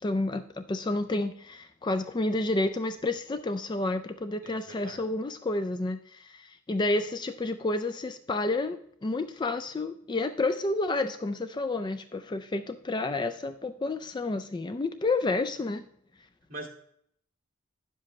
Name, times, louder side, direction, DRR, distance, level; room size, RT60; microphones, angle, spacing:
voice 1, 0.0-15.8, left 2 dB, 20° left, 9 dB, 0.3 m, -30 dB
voice 2, 4.4-5.0 16.5-16.7, right 2 dB, 45° right, 1 dB, 2.0 m, -42 dB
10.0 x 7.5 x 3.1 m, 0.65 s
head